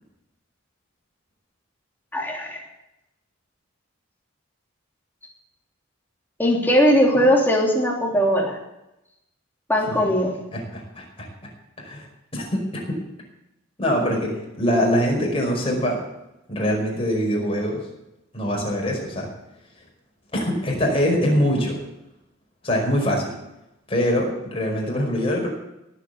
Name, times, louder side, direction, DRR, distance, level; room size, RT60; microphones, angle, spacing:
voice 1, 2.1-2.6 6.4-8.6 9.7-10.3, equal, 10° left, -1 dB, 3.0 m, -19 dB
voice 2, 10.5-11.3 11.8-12.1 12.3-13.0 13.8-14.3 14.6-16.0 16.5-17.8 18.3-19.3 20.3-21.8 22.6-23.3 23.9-25.5, equal, 30° left, -1 dB, 5.2 m, -23 dB
17.5 x 8.4 x 8.2 m, 0.89 s
head